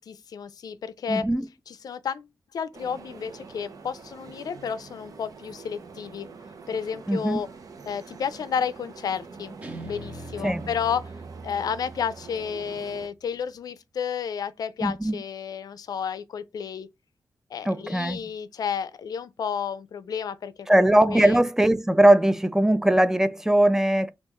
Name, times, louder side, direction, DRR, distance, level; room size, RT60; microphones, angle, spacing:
voice 1, 0.0-1.3 1.7-2.3 2.5-6.3 6.7-7.5 7.9-9.5 9.8-11.0 11.4-16.9 17.5-21.4, left 7 dB, 75° left, 0.4 m, -31 dB
voice 2, 1.1-1.5 7.1-7.4 10.4-10.7 14.8-15.2 17.7-18.2 20.7-24.1, right 1 dB, 5° right, 0.4 m, -20 dB
sound 1, 2.7-13.1, right 4 dB, 65° right, 0.7 m, -45 dB
Guitar, 9.6-12.8, right 2 dB, 20° right, 0.9 m, -42 dB
3.0 x 2.4 x 3.6 m
cardioid pair, 65°, 7 cm